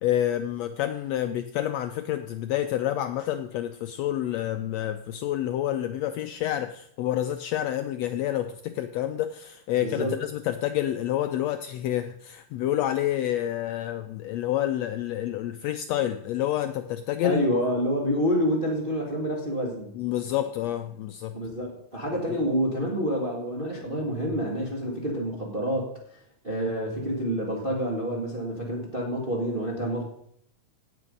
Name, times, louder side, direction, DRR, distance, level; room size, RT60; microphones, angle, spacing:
voice 1, 0.0-17.6 19.9-21.4, left 12 dB, 85° left, 8 dB, 1.5 m, -28 dB
voice 2, 9.8-10.1 17.2-19.9 21.3-26.2 26.4-30.0, equal, 25° right, -2 dB, 1.4 m, -28 dB
17.5 x 6.9 x 5.3 m, 0.71 s
omnidirectional pair, 3.6 m